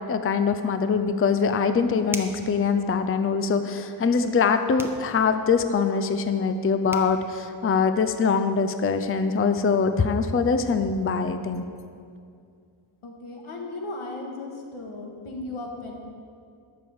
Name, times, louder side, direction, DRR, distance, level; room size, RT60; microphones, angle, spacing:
voice 1, 0.0-11.6, left 5 dB, 30° left, 9 dB, 0.5 m, -23 dB
sound 1, 2.0-2.5 4.8-5.0 6.6-6.7 6.9-7.1, right 1 dB, 5° right, 0.9 m, -36 dB
voice 2, 13.0-15.9, left 2 dB, 80° left, 1 dB, 1.9 m, -36 dB
11.5 x 6.9 x 7.1 m, 2.4 s
cardioid pair, 95°, 49 cm